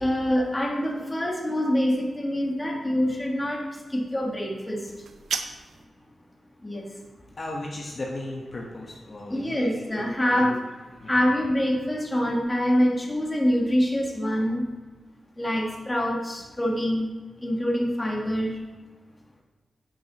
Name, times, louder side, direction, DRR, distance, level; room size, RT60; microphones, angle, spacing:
voice 1, 0.0-3.6 3.9-4.8 6.6-6.9 9.3-10.5 11.1-14.7 15.4-17.1 17.4-18.5, equal, 20° left, 0 dB, 1.6 m, -25 dB
sound 1, 4.9-5.9, right 6 dB, 85° right, 0.4 m, -33 dB
voice 2, 7.4-10.6 11.0-11.1, left 2 dB, 50° left, -1 dB, 1.2 m, -36 dB
9.1 x 5.4 x 3.0 m, 1.3 s
cardioid pair, 55°, 0 cm